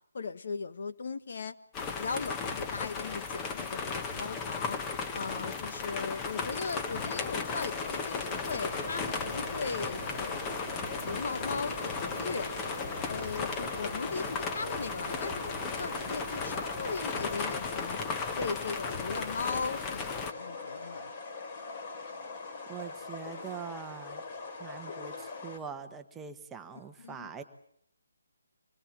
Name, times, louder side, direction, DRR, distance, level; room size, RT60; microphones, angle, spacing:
voice 1, 0.1-1.5 1.9-4.8 5.1-10.4 11.0-12.5 13.1-18.0 18.3-21.1 27.0-27.3, left 4 dB, 55° left, 1.4 m, -38 dB
sound 1, 1.7-20.3, left 5 dB, 15° left, 1.5 m, -36 dB
sound 2, 6.7-25.6, left 4 dB, 35° left, 5.0 m, -42 dB
sound 3, 8.2-17.4, right 7 dB, 45° right, 0.9 m, -47 dB
voice 2, 22.7-24.2 24.6-27.4, right 7 dB, 10° right, 1.3 m, -43 dB
26.5 x 20.5 x 7.5 m
hypercardioid pair, 160°, 0 cm